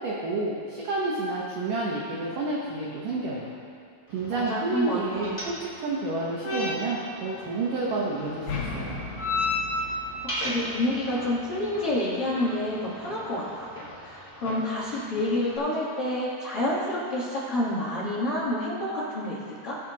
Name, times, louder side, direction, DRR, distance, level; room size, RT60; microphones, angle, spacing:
voice 1, 0.0-3.5 4.1-9.0, right 2 dB, 75° right, -5 dB, 1.9 m, -30 dB
sound 1, 4.1-15.6, left 2 dB, 15° left, 1.3 m, -35 dB
voice 2, 4.3-5.3 10.2-13.7 14.0-19.8, left 1 dB, 85° left, -9 dB, 1.2 m, -28 dB
sound 2, 8.2-12.2, left 4 dB, 60° left, 2.3 m, -38 dB
22.0 x 7.4 x 2.9 m, 2.3 s
omnidirectional pair, 5.3 m